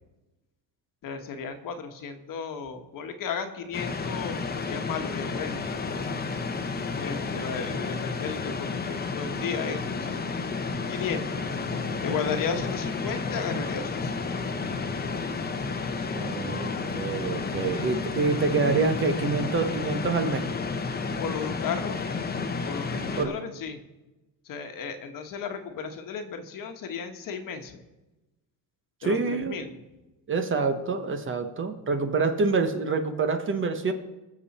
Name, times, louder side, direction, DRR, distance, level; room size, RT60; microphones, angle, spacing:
voice 1, 1.0-5.7 7.0-10.2 10.9-11.4 12.0-14.4 21.2-22.0 22.3-23.8 24.4-27.8 29.0-29.8, left 6 dB, 55° left, 6 dB, 1.4 m, -35 dB
sound 1, 3.7-23.2, left 4 dB, 25° left, 1.0 m, -31 dB
voice 2, 16.1-20.5 23.2-23.4 29.0-29.6 30.3-33.9, right 4 dB, 30° right, 7 dB, 1.1 m, -26 dB
21.0 x 7.3 x 4.3 m, 1.1 s
cardioid pair, 135°, 38 cm